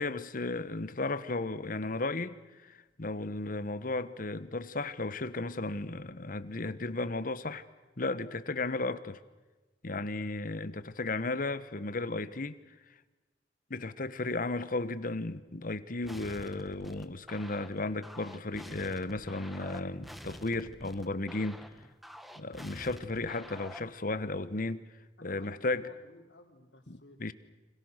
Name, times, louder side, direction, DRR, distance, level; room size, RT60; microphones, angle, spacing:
voice 1, 0.0-7.6 8.0-9.2 9.8-12.6 13.7-21.6 22.4-24.9 25.2-25.8 26.9-27.3, left 2 dB, 50° left, 1.2 m, -34 dB
sound 1, 16.0-24.0, equal, ahead, 1.4 m, -48 dB
voice 2, 25.2-27.3, left 1 dB, 85° left, 3.7 m, -55 dB
30.0 x 26.0 x 6.6 m
head